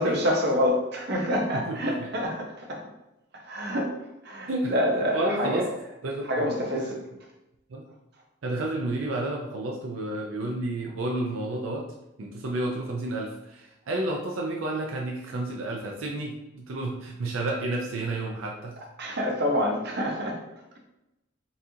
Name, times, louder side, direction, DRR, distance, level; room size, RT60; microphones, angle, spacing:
voice 1, 0.0-2.8 3.4-3.9 4.2-5.7 6.3-7.0 19.0-20.4, equal, 55° right, -1 dB, 0.8 m, -27 dB
voice 2, 1.5-2.1 4.5-4.7 5.1-5.7 6.0-6.5 7.7-7.8 8.4-11.9 12.2-18.7, right 2 dB, 90° right, -1 dB, 0.5 m, -31 dB
4.1 x 2.4 x 2.7 m, 0.92 s
head